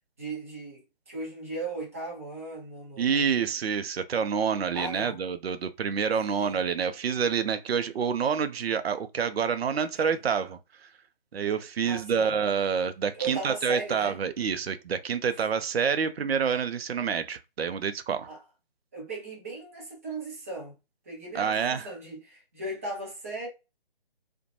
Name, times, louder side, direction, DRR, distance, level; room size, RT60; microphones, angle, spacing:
voice 1, 0.2-3.5 4.7-5.2 6.3-6.6 9.8-10.2 11.8-12.3 13.1-14.2 18.3-18.4 18.9-20.8 21.1-23.5, right 2 dB, 15° right, 0.5 m, -37 dB
voice 2, 3.0-10.6 11.3-18.3 21.3-21.9, right 6 dB, 80° right, 0.5 m, -27 dB
2.5 x 2.1 x 2.8 m
figure-of-eight pair, 150°, 30 cm